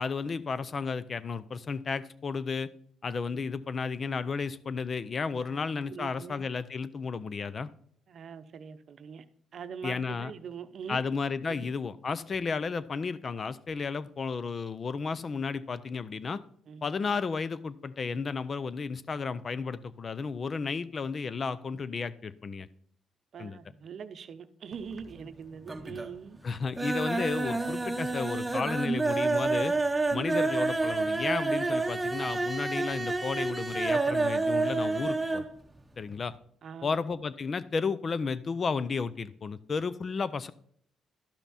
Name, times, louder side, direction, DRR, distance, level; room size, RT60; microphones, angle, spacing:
voice 1, 0.0-2.7 3.0-7.7 9.8-10.3 10.9-16.4 16.8-22.7 23.4-23.6 25.9-26.0 26.4-29.7 30.1-35.5 36.0-36.3 36.8-40.5, left 5 dB, 40° left, 0.6 m, -33 dB
voice 2, 5.9-6.4 8.1-9.2 9.5-11.0 11.5-11.7 16.7-16.9 23.3-26.4 30.1-30.3 36.6-36.9, right 6 dB, 60° right, 0.7 m, -43 dB
sound 1, 24.7-25.3 25.6-26.2 26.5-35.5 35.8-35.9 36.2-36.3, right 3 dB, 15° right, 0.9 m, -29 dB
12.0 x 5.8 x 4.2 m
cardioid pair, 90°, 0 cm